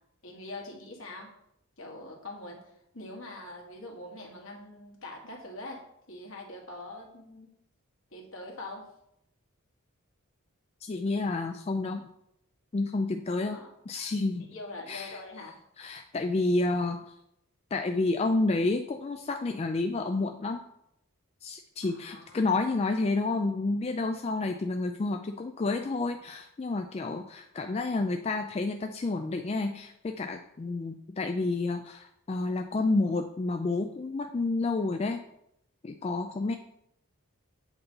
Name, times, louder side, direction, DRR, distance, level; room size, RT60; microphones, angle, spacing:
voice 1, 0.2-1.3 1.8-5.8 6.1-7.5 8.1-8.9 13.5-13.7 14.0-14.1 14.5-15.6 21.8-22.4, left 2 dB, 65° left, 0 dB, 1.7 m, -43 dB
voice 2, 10.8-12.0 12.7-14.5 14.9-15.2 15.8-17.0 17.7-20.6 21.4-35.2 35.8-36.5, left 3 dB, 30° left, 5 dB, 0.3 m, -30 dB
8.0 x 4.1 x 5.4 m, 0.77 s
head